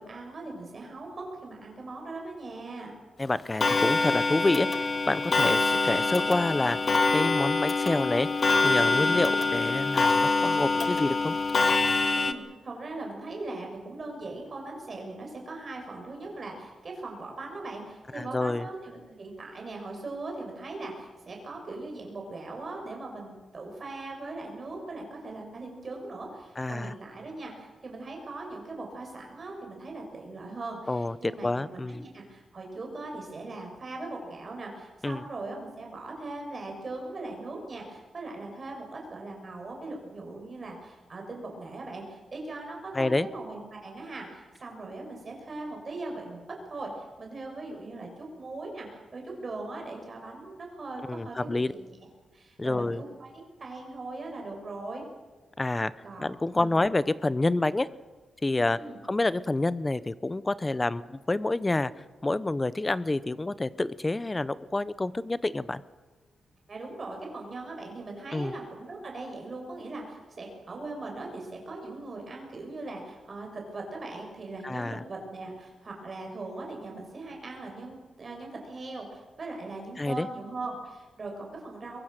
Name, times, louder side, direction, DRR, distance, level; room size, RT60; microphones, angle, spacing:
voice 1, 0.0-2.9 9.0-9.3 12.1-51.9 52.3-55.0 56.0-56.7 58.7-59.0 66.7-82.0, right 2 dB, 35° right, 1 dB, 6.2 m, -40 dB
voice 2, 3.2-8.3 8.6-11.3 18.1-18.7 26.6-26.9 30.9-32.0 35.0-35.2 42.9-43.3 51.1-51.7 52.6-53.0 55.6-55.9 56.2-57.9 58.4-58.8 59.0-61.9 62.2-65.8 68.3-68.5 74.6-75.0 80.0-80.3, left 2 dB, 15° left, 16 dB, 0.7 m, -28 dB
Clock, 3.6-12.3, left 3 dB, 30° left, 1.1 m, -25 dB
23.5 x 23.0 x 6.6 m, 1.3 s
wide cardioid pair, 165°, 0 cm